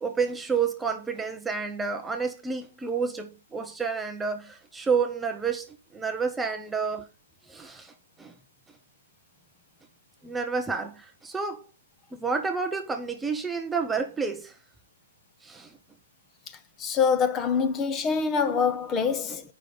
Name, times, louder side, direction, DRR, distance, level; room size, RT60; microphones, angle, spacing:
voice 1, 0.0-7.1 7.5-8.3 10.2-11.7 12.1-14.6 15.4-15.7 19.0-19.4, right 5 dB, 10° right, 0.6 m, -30 dB
voice 2, 16.8-19.4, left 6 dB, 20° left, 0.8 m, -25 dB
7.4 x 5.4 x 5.1 m
hypercardioid pair, 135°, 0 cm